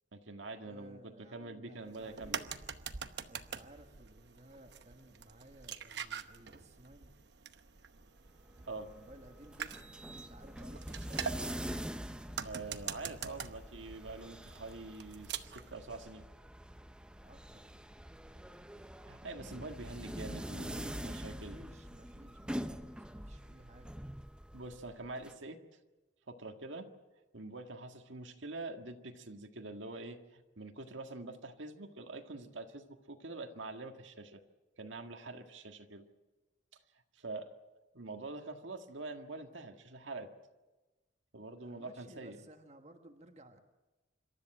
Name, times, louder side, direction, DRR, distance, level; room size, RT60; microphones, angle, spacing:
voice 1, 0.1-2.4 8.7-8.9 12.4-16.3 19.1-21.6 24.5-25.6 26.3-26.9 27.3-34.4 34.8-36.1 37.1-37.6 37.9-40.3 41.3-42.4, right 2 dB, 80° right, 5 dB, 1.7 m, -45 dB
voice 2, 0.6-2.5 3.3-7.1 8.7-9.9 10.3-11.3 17.2-17.7 19.4-19.8 21.3-23.9 41.6-43.6, right 1 dB, 35° right, 5 dB, 1.6 m, -57 dB
sound 1, 1.9-15.7, right 7 dB, 60° right, 0.9 m, -45 dB
sound 2, 8.3-25.3, equal, 5° right, 0.6 m, -45 dB
26.5 x 13.5 x 8.9 m, 1.1 s
head